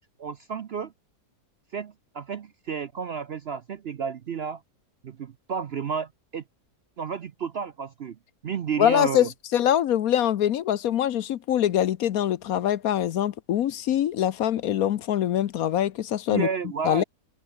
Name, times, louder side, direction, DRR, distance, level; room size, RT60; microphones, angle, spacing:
voice 1, 0.2-0.9 1.7-4.6 5.0-6.4 7.0-8.2 8.4-9.3 16.3-17.0, right 6 dB, 55° right, 0.7 m, -31 dB
voice 2, 8.8-16.5 16.8-17.0, left 11 dB, 65° left, 1.1 m, -24 dB
omnidirectional pair, 1.7 m